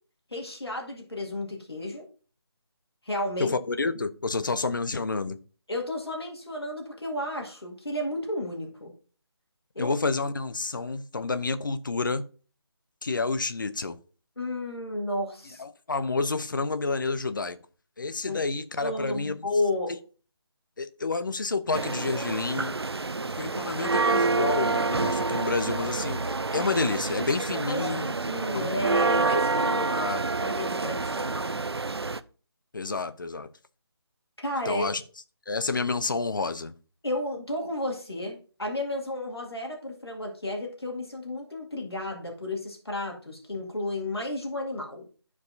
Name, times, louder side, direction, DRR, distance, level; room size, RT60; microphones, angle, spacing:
voice 1, 0.3-2.1 3.0-3.6 5.7-8.9 9.8-9.9 14.4-15.6 18.3-18.4 18.8-19.9 27.7-31.6 34.4-34.9 37.0-45.1, left 1 dB, 70° left, 2.0 m, -32 dB
voice 2, 3.4-5.4 9.8-12.3 13.0-14.0 15.6-17.6 18.0-19.5 20.8-22.8 23.3-28.1 28.5-28.7 29.8-30.2 32.7-33.5 34.7-35.0 35.5-36.7, left 3 dB, 50° left, 0.6 m, -29 dB
sound 1, 21.7-32.2, right 3 dB, 75° right, 0.5 m, -28 dB
12.0 x 4.7 x 2.7 m
figure-of-eight pair, 155°, 14 cm